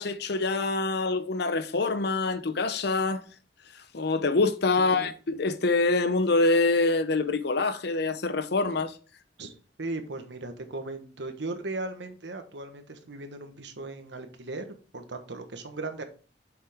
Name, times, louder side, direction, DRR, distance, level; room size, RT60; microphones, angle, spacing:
voice 1, 0.0-3.2 3.7-9.0, left 3 dB, 65° left, 0.7 m, -25 dB
voice 2, 4.8-5.1 9.4-9.5 9.8-16.0, right 2 dB, 75° right, 1.2 m, -37 dB
7.2 x 6.1 x 3.5 m
head